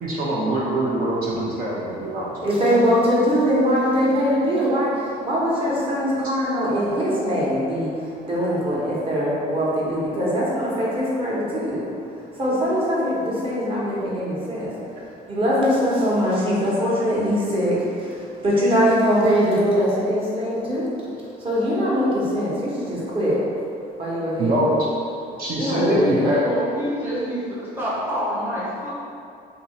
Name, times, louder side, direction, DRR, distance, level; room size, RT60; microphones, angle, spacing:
voice 1, 0.0-2.5 24.4-24.7 25.4-26.4, right 1 dB, 60° right, -6 dB, 0.7 m, -23 dB
voice 2, 2.4-4.9 5.3-7.9 8.3-11.8 12.4-14.7 15.3-17.7 18.4-20.9 21.4-23.4 24.0-24.6 25.6-26.4, equal, 35° right, -6 dB, 1.1 m, -22 dB
voice 3, 26.4-28.9, equal, 15° right, -7 dB, 0.8 m, -27 dB
2.7 x 2.7 x 4.1 m, 2.5 s
cardioid pair, 110°, 17 cm